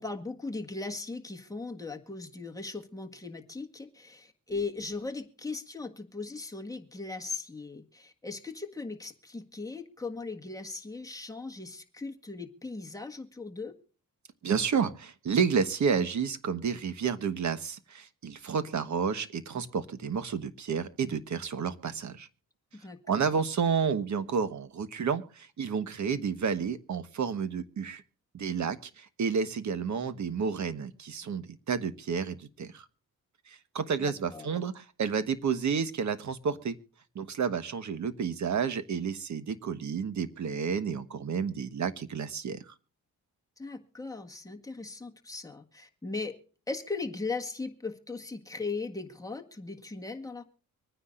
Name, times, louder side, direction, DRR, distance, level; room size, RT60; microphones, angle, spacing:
voice 1, 0.0-13.7 22.7-23.4 34.0-34.5 43.6-46.4 46.7-50.4, left 3 dB, 10° left, 2 dB, 1.6 m, -38 dB
voice 2, 14.4-22.3 23.1-28.0 28.3-32.8 33.5-36.8 37.1-42.6, right 6 dB, 55° right, 12 dB, 1.3 m, -30 dB
25.0 x 9.8 x 2.5 m, 0.39 s
cardioid pair, 105°, 34 cm